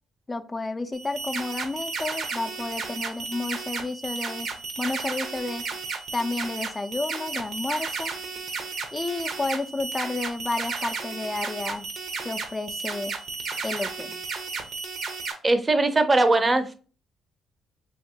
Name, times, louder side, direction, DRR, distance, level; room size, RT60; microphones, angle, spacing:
voice 1, 0.3-4.5 4.8-5.6 6.1-8.1 8.9-11.9 12.2-13.1 13.6-14.2, left 3 dB, 20° left, 6 dB, 0.4 m, -31 dB
sound 1, 0.9-15.3, right 4 dB, 70° right, 0.7 m, -33 dB
voice 2, 15.4-16.7, right 2 dB, 25° right, 9 dB, 0.5 m, -20 dB
3.5 x 2.8 x 2.7 m, 0.37 s
cardioid pair, 90°, 0 cm